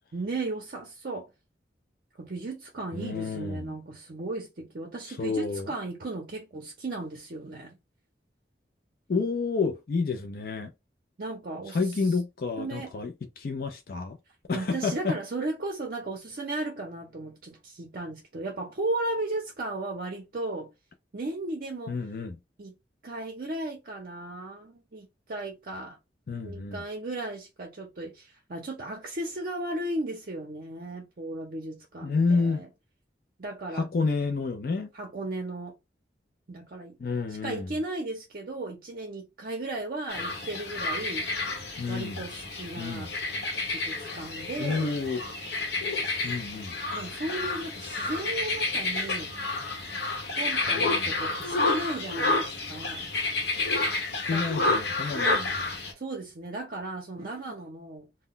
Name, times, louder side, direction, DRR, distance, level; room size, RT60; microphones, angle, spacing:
voice 1, 0.1-1.3 2.2-7.8 11.2-12.1 12.6-12.9 14.5-20.7 21.1-22.0 22.6-22.7 23.0-26.0 26.4-32.7 33.4-33.9 34.9-35.7 36.5-37.0 37.4-41.3 41.9-43.2 43.7-44.9 46.9-49.3 50.4-53.1 54.3-54.4 56.0-58.1, right 2 dB, 50° right, 0.6 m, -35 dB
voice 2, 2.9-3.7 5.1-5.7 9.1-10.7 11.7-14.2 14.5-15.1 21.9-22.4 26.3-26.8 32.0-32.6 33.7-34.9 37.0-37.7 41.8-42.2 42.8-43.1 44.6-45.2 46.2-46.7 50.7-51.1 54.3-55.7, left 4 dB, 55° left, 0.4 m, -29 dB
sound 1, 40.1-55.9, left 3 dB, 70° left, 0.9 m, -30 dB
2.2 x 2.1 x 3.7 m
head